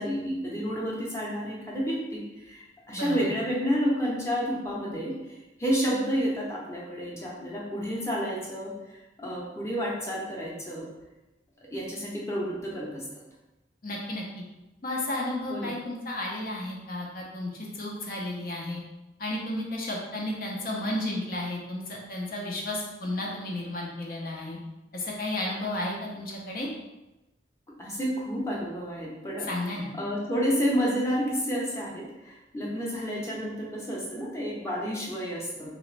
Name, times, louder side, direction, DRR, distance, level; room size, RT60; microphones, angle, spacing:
voice 1, 0.0-10.8 11.7-13.0 15.5-15.7 27.8-29.5 29.9-35.7, equal, 15° left, -4 dB, 0.8 m, -30 dB
voice 2, 2.9-3.3 13.8-14.4 14.8-18.8 19.2-24.6 24.9-26.7 29.5-29.8, left 1 dB, 50° left, -2 dB, 0.7 m, -33 dB
3.9 x 3.1 x 3.2 m, 1.0 s
head